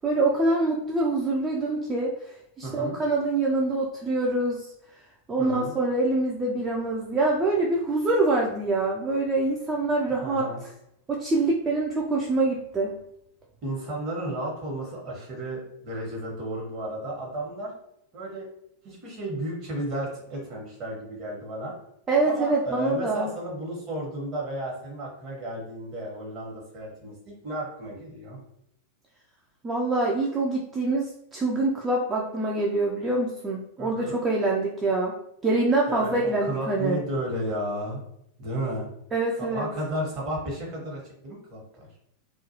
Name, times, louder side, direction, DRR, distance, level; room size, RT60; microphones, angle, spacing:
voice 1, 0.0-4.7 5.3-10.5 11.1-13.0 22.1-23.3 29.6-35.2 35.4-37.0 39.1-39.7, right 2 dB, 20° right, -2 dB, 0.4 m, -25 dB
voice 2, 2.6-3.0 5.4-5.7 10.2-10.6 13.6-17.7 18.1-18.5 18.8-21.7 22.2-28.4 33.8-34.2 35.9-38.0 38.4-38.9 39.4-41.9, right 1 dB, 35° right, -2 dB, 1.0 m, -33 dB
2.3 x 2.2 x 2.8 m, 0.76 s
figure-of-eight pair, 90°, 0 cm